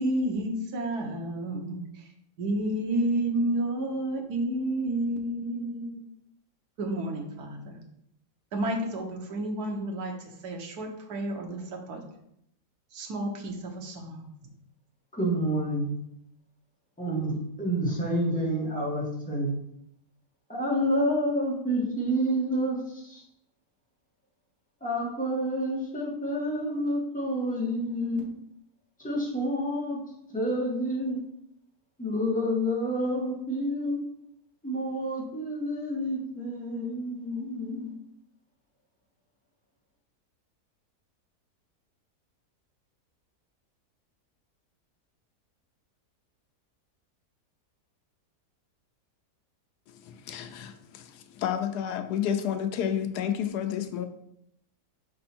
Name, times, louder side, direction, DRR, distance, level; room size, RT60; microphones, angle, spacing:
voice 1, 0.0-2.0 2.4-6.1 6.8-7.8 8.5-10.1 10.4-12.0 12.9-14.3, right 1 dB, 75° right, 1 dB, 1.5 m, -30 dB
voice 2, 15.1-15.9 17.0-19.5 20.5-23.2 24.8-28.2 29.0-30.0 30.3-31.2 32.0-34.0 34.6-37.9, equal, 5° left, -5 dB, 1.6 m, -29 dB
voice 3, 49.9-54.1, left 9 dB, 80° left, 9 dB, 1.1 m, -31 dB
5.3 x 4.1 x 4.3 m, 0.76 s
omnidirectional pair, 1.7 m